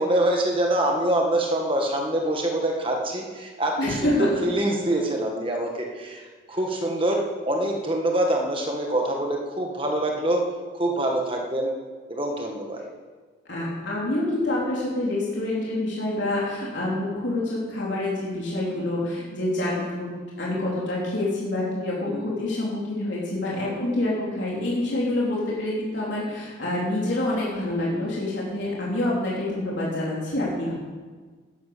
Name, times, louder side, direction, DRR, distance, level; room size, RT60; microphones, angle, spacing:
voice 1, 0.0-10.4 10.7-11.7 12.1-12.8 19.6-19.8 22.1-22.3 23.5-24.0, right 1 dB, 25° right, 1 dB, 1.7 m, -25 dB
voice 2, 3.8-4.3 13.5-30.7, left 1 dB, 60° left, -6 dB, 3.8 m, -27 dB
12.0 x 11.0 x 6.8 m, 1.4 s
head